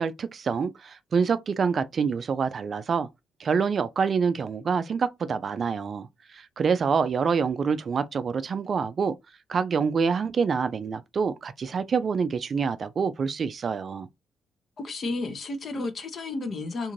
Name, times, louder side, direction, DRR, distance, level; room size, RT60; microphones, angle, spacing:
voice 1, 0.0-3.1 3.4-9.1 9.5-14.1, right 5 dB, 45° right, 0.3 m, -26 dB
voice 2, 14.8-16.9, left 3 dB, 45° left, 0.7 m, -32 dB
2.6 x 2.4 x 3.0 m
cardioid pair, 90°, 0 cm